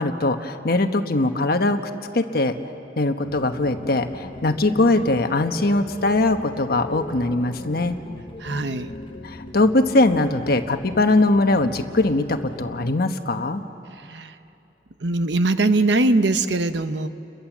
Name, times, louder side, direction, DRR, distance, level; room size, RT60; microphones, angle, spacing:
voice 1, 0.0-1.8 2.1-2.6 3.0-8.0 9.2-13.6, left 2 dB, 60° left, 7 dB, 1.2 m, -21 dB
sound 1, 3.2-12.9, left 1 dB, 30° left, 1.0 m, -38 dB
voice 2, 8.4-8.9 14.0-14.3 15.0-17.1, right 2 dB, 75° right, 10 dB, 1.0 m, -21 dB
30.0 x 22.5 x 7.4 m, 2.8 s
head